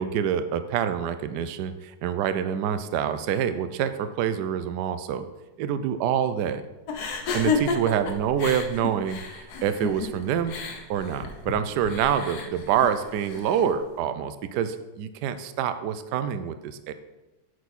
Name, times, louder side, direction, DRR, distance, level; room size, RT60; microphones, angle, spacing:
voice 1, 0.0-5.3 5.6-6.6 7.3-10.6 10.9-16.9, right 8 dB, 75° right, 11 dB, 1.2 m, -26 dB
sound 1, 6.9-13.7, left 4 dB, 65° left, 1.4 m, -32 dB
9.2 x 6.7 x 4.2 m, 1.0 s
omnidirectional pair, 1.9 m